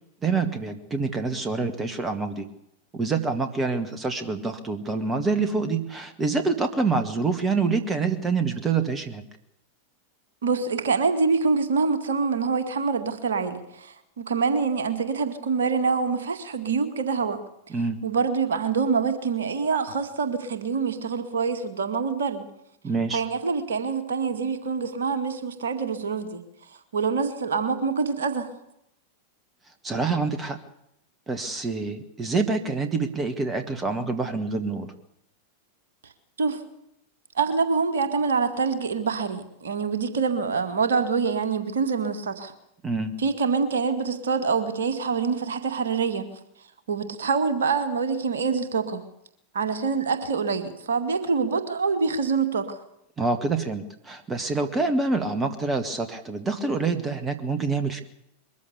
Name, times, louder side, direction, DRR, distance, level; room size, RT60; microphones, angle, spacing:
voice 1, 0.2-2.5 2.9-9.2 17.7-18.0 22.8-23.2 29.8-30.6 31.3-34.9 42.8-43.1 53.2-58.0, right 4 dB, 15° right, 9 dB, 2.0 m, -26 dB
voice 2, 10.4-17.4 18.0-22.5 23.1-26.4 26.9-28.5 36.4-36.6 37.4-42.5 43.2-46.3 46.9-49.0 49.5-52.8, right 5 dB, 65° right, 8 dB, 2.2 m, -25 dB
22.0 x 14.5 x 8.3 m, 0.80 s
figure-of-eight pair, 90°, 0 cm